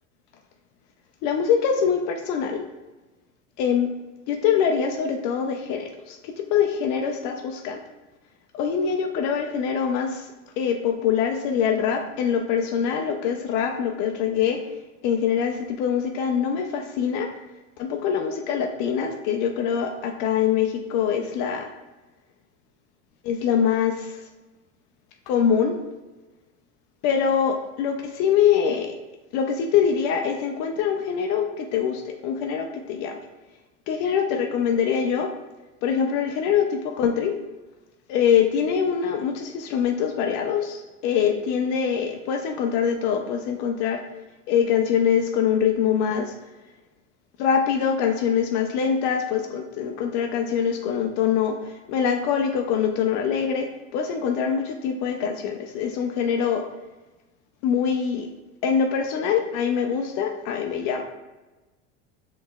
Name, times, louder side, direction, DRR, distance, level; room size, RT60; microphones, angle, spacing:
voice 1, 1.2-2.7 3.6-3.9 4.3-7.8 8.5-14.7 15.0-17.3 17.8-21.7 23.2-24.2 25.3-25.8 27.0-29.0 29.3-33.2 33.9-35.3 35.8-37.4 38.1-44.0 44.5-46.4 47.4-56.7 57.6-58.3 58.6-61.0, left 7 dB, 55° left, 3 dB, 0.5 m, -24 dB
5.4 x 3.2 x 2.3 m, 1.1 s
hypercardioid pair, 100°, 37 cm